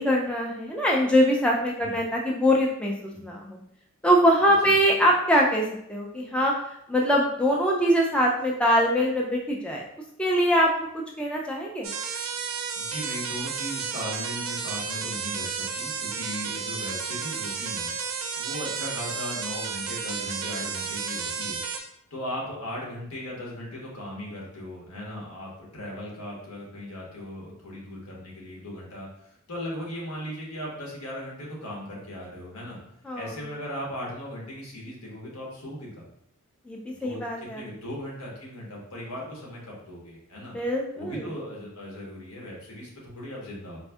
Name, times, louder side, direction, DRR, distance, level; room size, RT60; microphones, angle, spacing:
voice 1, 0.0-3.6 4.0-6.5 6.9-9.8 10.2-11.9 33.1-33.3 36.7-37.6 40.5-41.2, equal, 5° left, -2 dB, 0.3 m, -23 dB
sound 1, 11.8-21.8, right 6 dB, 65° right, 0.5 m, -32 dB
voice 2, 12.8-17.9 18.4-21.6 22.1-32.8 33.1-36.1 37.0-40.6 40.9-43.8, equal, 90° left, -3 dB, 1.1 m, -37 dB
4.1 x 2.6 x 2.3 m, 0.73 s
head